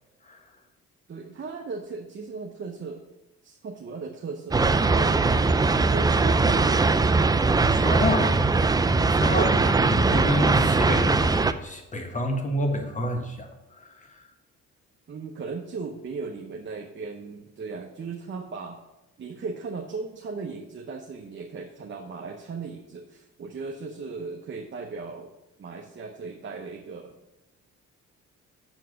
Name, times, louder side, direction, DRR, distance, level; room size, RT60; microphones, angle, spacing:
voice 1, 1.1-3.0 3.4-5.6 5.9-7.0 9.4-9.8 15.1-18.8 19.2-25.3 25.6-27.2, right 4 dB, 40° right, 2 dB, 0.8 m, -37 dB
sound 1, 4.5-11.5, right 3 dB, 15° right, 0.3 m, -21 dB
voice 2, 7.7-8.4 9.1-9.5 9.9-14.2, left 1 dB, 25° left, 4 dB, 1.4 m, -29 dB
7.0 x 4.5 x 6.3 m, 0.96 s
cardioid pair, 90°, 30 cm